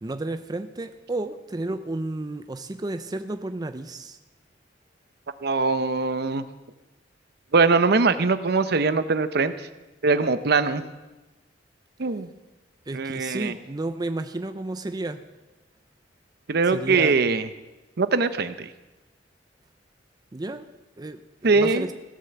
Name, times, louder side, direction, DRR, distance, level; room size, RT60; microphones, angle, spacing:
voice 1, 0.0-4.2 12.9-15.2 16.7-17.1 20.3-20.7 21.0-21.9, right 2 dB, 20° right, 9 dB, 0.5 m, -32 dB
voice 2, 5.4-6.4 7.5-9.5 10.0-10.8 12.0-12.3 12.9-13.5 16.5-17.5 18.0-18.7 21.4-21.9, right 4 dB, 60° right, 12 dB, 0.7 m, -22 dB
16.0 x 7.5 x 6.9 m, 1.1 s
head